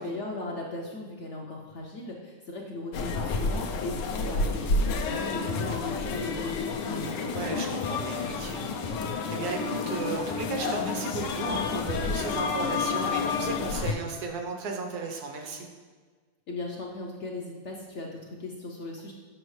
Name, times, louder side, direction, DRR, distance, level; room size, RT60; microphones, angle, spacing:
voice 1, 0.0-6.7 16.5-19.1, left 2 dB, 60° left, -1 dB, 0.8 m, -38 dB
sound 1, 2.9-13.9, left 4 dB, 90° left, 1.3 m, -30 dB
voice 2, 6.8-8.8 9.3-15.7, right 4 dB, 70° right, 3 dB, 1.4 m, -35 dB
7.6 x 6.0 x 3.2 m, 1.4 s
omnidirectional pair, 1.8 m